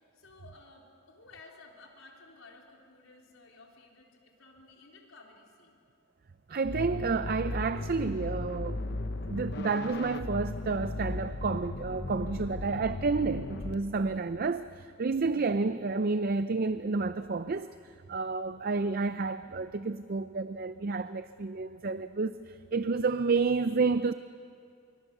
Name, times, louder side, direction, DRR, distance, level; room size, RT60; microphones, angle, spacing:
voice 1, 0.1-5.8, left 3 dB, 85° left, 3.9 m, -55 dB
voice 2, 6.5-9.0 9.3-17.7 18.1-24.1, right 4 dB, 45° right, 0.5 m, -30 dB
sound 1, 6.6-13.7, left 2 dB, 55° left, 0.9 m, -36 dB
25.0 x 24.0 x 6.7 m
head